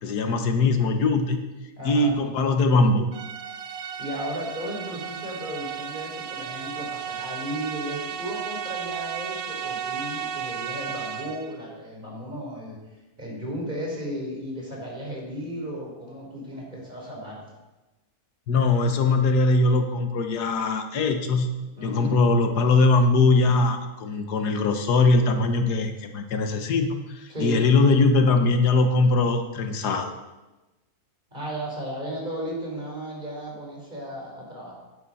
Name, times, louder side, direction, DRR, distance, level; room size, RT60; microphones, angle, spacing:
voice 1, 0.0-1.4 1.8-3.1 18.5-21.5 21.8-30.1, left 3 dB, 85° left, 6 dB, 1.6 m, -21 dB
voice 2, 1.8-2.1 4.0-12.8 13.2-17.5 21.8-22.2 27.3-27.7 31.3-34.7, equal, 30° right, -2 dB, 3.7 m, -34 dB
sound 1, 3.1-11.6, right 8 dB, 70° right, 1.1 m, -34 dB
11.5 x 10.5 x 4.2 m, 1.1 s
omnidirectional pair, 1.7 m